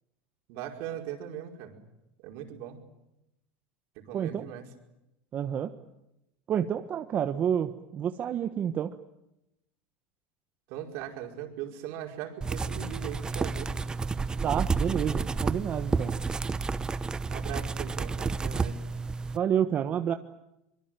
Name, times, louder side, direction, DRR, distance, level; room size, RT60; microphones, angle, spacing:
voice 1, 0.5-1.8 2.2-2.8 3.9-4.7 10.7-13.8 17.3-18.9, right 10 dB, 65° right, 3 dB, 5.2 m, -39 dB
voice 2, 4.1-4.4 5.3-5.7 6.5-8.9 14.4-16.2 19.3-20.1, right 9 dB, 35° right, 8 dB, 1.3 m, -29 dB
sound 1, 12.4-19.4, right 4 dB, 15° right, 1.0 m, -31 dB
24.5 x 23.0 x 9.1 m, 0.88 s
supercardioid pair, 120°, 5 cm